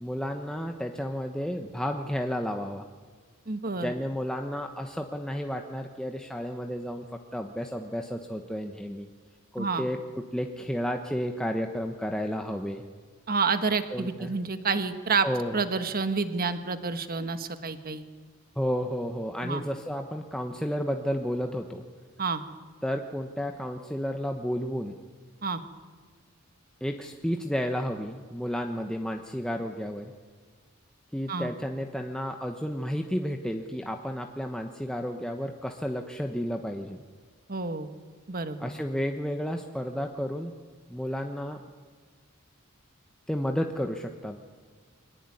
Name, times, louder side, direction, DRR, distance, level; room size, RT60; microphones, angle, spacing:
voice 1, 0.0-2.9 3.8-7.0 7.3-9.1 9.5-10.0 10.3-12.8 13.9-14.4 15.2-15.6 18.6-21.8 22.8-24.9 26.8-30.1 31.1-37.0 38.6-40.5 40.9-41.6 43.3-44.4, equal, 5° left, 3 dB, 1.0 m, -32 dB
voice 2, 3.5-3.9 9.6-9.9 13.3-15.3 15.5-18.0 19.4-19.6 22.2-22.4 25.4-25.6 31.3-31.5 37.5-37.9 38.3-38.7, right 4 dB, 45° right, 9 dB, 1.5 m, -29 dB
23.5 x 18.5 x 9.8 m, 1.5 s
head